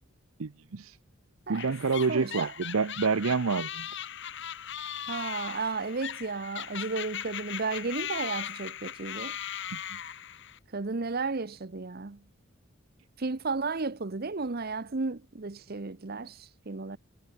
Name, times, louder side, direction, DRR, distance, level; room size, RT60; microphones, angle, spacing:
voice 1, 0.4-1.0 1.5-3.9 9.7-10.0, right 5 dB, 85° right, 0.7 m, -28 dB
sound 1, 1.5-10.6, left 10 dB, 60° left, 1.9 m, -38 dB
voice 2, 2.1-2.5 5.1-9.4 10.7-12.2 13.2-17.0, right 4 dB, 45° right, 0.9 m, -33 dB
head